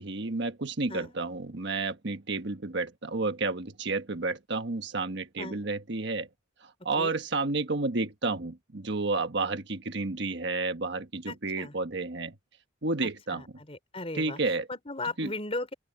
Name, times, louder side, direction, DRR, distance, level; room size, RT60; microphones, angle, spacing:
voice 1, 0.0-6.3 6.8-12.3 12.8-13.4 14.1-14.7 15.2-15.3, right 3 dB, 60° right, 1.3 m, -31 dB
voice 2, 11.3-11.7 13.0-15.7, left 2 dB, 30° left, 4.5 m, -37 dB
open air
head